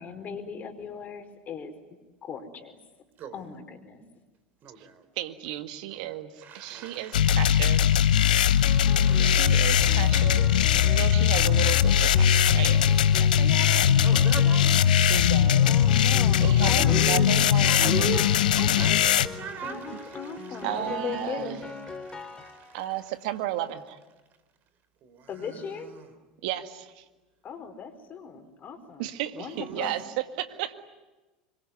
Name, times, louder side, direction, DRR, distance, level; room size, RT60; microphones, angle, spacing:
voice 1, 0.0-1.7 2.2-2.7 3.3-4.0 15.6-17.7 19.6-21.6 25.3-25.9 27.4-29.9, left 5 dB, 40° left, 7 dB, 4.7 m, -38 dB
voice 2, 4.6-5.0 5.9-6.1 6.4-10.1 14.0-14.7 16.4-17.3 17.6-20.7 22.0-22.8 25.0-25.3 25.8-26.1 29.6-30.0, right 6 dB, 45° right, 11 dB, 4.0 m, -39 dB
voice 3, 5.2-8.1 9.2-13.9 15.0-15.8 16.1-18.2 20.6-21.6 22.7-24.0 26.4-27.0 29.0-30.7, right 13 dB, 70° right, 9 dB, 1.9 m, -34 dB
sound 1, 7.1-19.3, left 9 dB, 80° left, 0.9 m, -20 dB
Piano, 8.6-23.0, left 3 dB, 15° left, 3.5 m, -42 dB
26.0 x 22.5 x 9.7 m, 1.2 s
hypercardioid pair, 85°, 4 cm